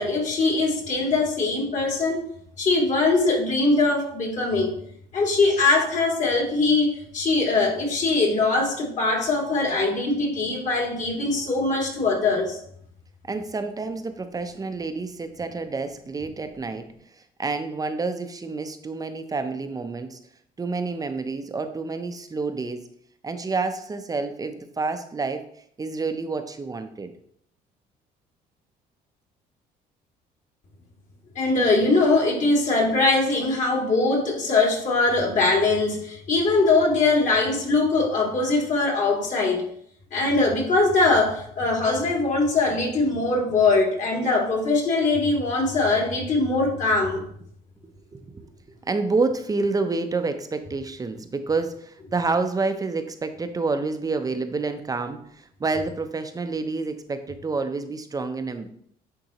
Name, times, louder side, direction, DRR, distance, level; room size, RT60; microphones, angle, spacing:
voice 1, 0.0-2.2 2.6-4.7 5.1-12.6 31.4-39.6 40.1-47.2, left 3 dB, 45° left, 0 dB, 2.1 m, -22 dB
voice 2, 13.3-16.9 17.4-20.2 20.6-22.8 23.2-25.5 25.8-27.1 48.1-48.5 48.8-58.7, right 3 dB, 20° right, 8 dB, 0.6 m, -28 dB
10.0 x 3.9 x 3.0 m, 0.66 s
cardioid pair, 110°, 17 cm